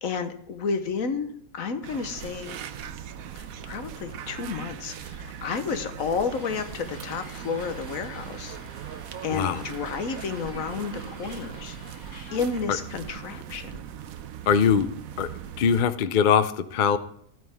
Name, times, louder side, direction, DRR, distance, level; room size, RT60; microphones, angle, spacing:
voice 1, 0.0-1.3 1.5-2.6 3.3-8.6 9.2-12.0 12.3-13.8, left 5 dB, 70° left, 9 dB, 1.4 m, -31 dB
sound 1, 1.8-15.8, right 9 dB, 75° right, 1.2 m, -40 dB
Hiss, 6.3-12.6, left 1 dB, 30° left, 2.1 m, -48 dB
voice 2, 9.3-9.6 14.5-14.9 15.2-15.3 15.6-17.0, left 7 dB, 55° left, 13 dB, 0.5 m, -21 dB
13.5 x 9.1 x 3.5 m, 0.69 s
omnidirectional pair, 1.5 m